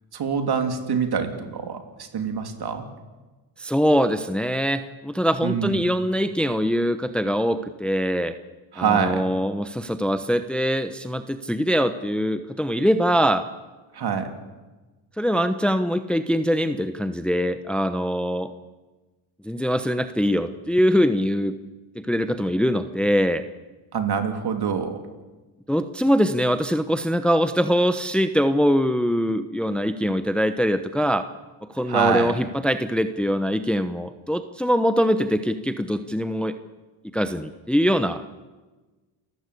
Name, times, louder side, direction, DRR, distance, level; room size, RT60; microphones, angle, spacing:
voice 1, 0.1-2.9 5.4-5.8 8.7-9.2 13.9-14.3 23.9-25.0 31.9-32.3, right 7 dB, 50° right, 6 dB, 3.3 m, -25 dB
voice 2, 3.6-8.4 8.8-13.4 15.2-18.5 19.4-21.6 21.9-23.4 25.7-31.2 31.7-36.6 37.1-38.3, equal, ahead, 10 dB, 1.0 m, -23 dB
28.0 x 15.0 x 8.4 m, 1.2 s
cardioid pair, 95°, 49 cm